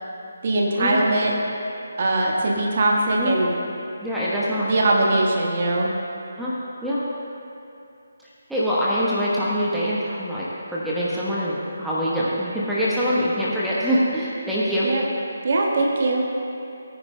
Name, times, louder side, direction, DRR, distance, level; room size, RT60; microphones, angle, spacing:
voice 1, 0.4-1.3 2.0-3.5 4.6-5.9 14.8-15.0 15.4-16.2, right 2 dB, 40° right, -1 dB, 1.5 m, -21 dB
voice 2, 4.0-4.7 6.4-6.5 6.8-7.0 8.5-14.9, equal, ahead, -10 dB, 1.1 m, -24 dB
18.5 x 9.6 x 2.2 m, 2.7 s
figure-of-eight pair, 145°, 0 cm